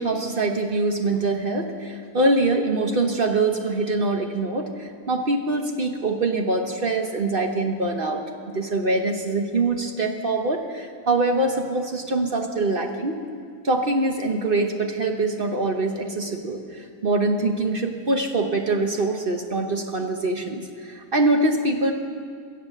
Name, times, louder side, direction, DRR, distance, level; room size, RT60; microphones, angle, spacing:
voice 1, 0.0-13.2 13.6-21.9, right 2 dB, 40° right, 4 dB, 1.0 m, -24 dB
22.0 x 8.2 x 7.3 m, 2.2 s
omnidirectional pair, 1.7 m